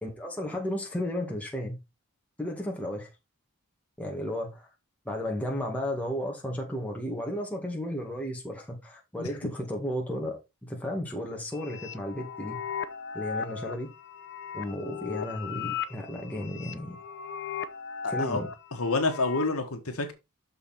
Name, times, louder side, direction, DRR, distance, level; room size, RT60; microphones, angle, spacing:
voice 1, 0.0-1.8 2.4-3.1 4.0-4.7 5.1-12.6 13.1-13.9 14.5-17.0 18.1-18.5, left 1 dB, 5° left, 2.0 m, -34 dB
sound 1, 11.5-19.6, left 7 dB, 50° left, 0.7 m, -37 dB
voice 2, 18.0-18.4 18.7-20.1, left 3 dB, 80° left, 1.6 m, -28 dB
6.5 x 5.6 x 4.3 m
head